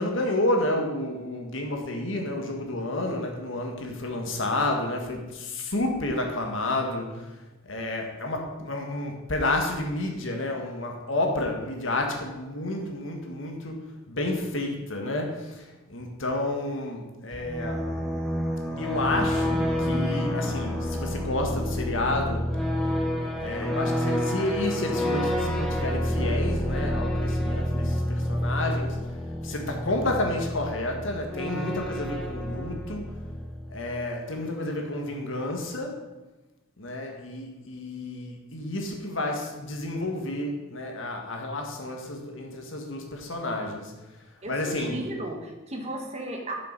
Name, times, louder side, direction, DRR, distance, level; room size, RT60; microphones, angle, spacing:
voice 1, 0.0-17.9 18.8-22.5 23.4-29.0 29.4-33.1 33.7-36.1 36.8-43.9 44.5-45.0, left 1 dB, 65° left, 2 dB, 1.7 m, -30 dB
sound 1, 17.3-34.0, equal, ahead, 1.2 m, -29 dB
voice 2, 44.4-46.6, right 1 dB, 30° right, 2 dB, 1.4 m, -35 dB
9.4 x 6.9 x 5.3 m, 1.1 s
head